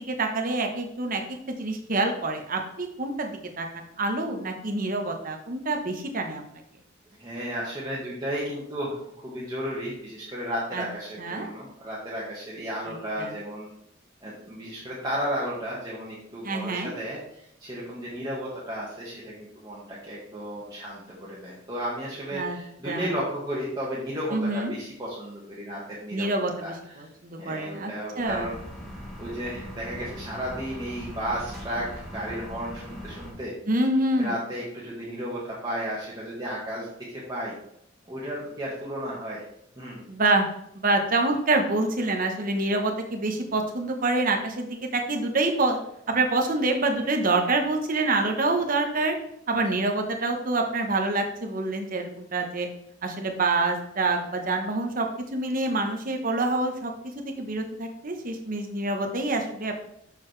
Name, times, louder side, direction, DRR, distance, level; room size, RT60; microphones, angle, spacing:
voice 1, 0.0-6.4 10.7-10.8 11.2-11.5 12.9-13.3 16.4-16.9 22.3-22.6 22.8-23.1 24.3-24.7 26.1-28.5 33.7-34.3 40.1-40.5 40.7-45.8 46.1-49.2 49.5-52.7 53.0-56.9 57.2-59.9, right 2 dB, 45° right, 3 dB, 1.1 m, -26 dB
voice 2, 7.2-13.7 14.2-27.1 27.4-28.5 29.2-33.5 34.2-37.5 38.1-39.5 39.7-40.0, equal, 20° right, -7 dB, 1.5 m, -33 dB
sound 1, 28.2-33.3, equal, ahead, 1.9 m, -40 dB
6.6 x 6.6 x 3.3 m, 0.74 s
head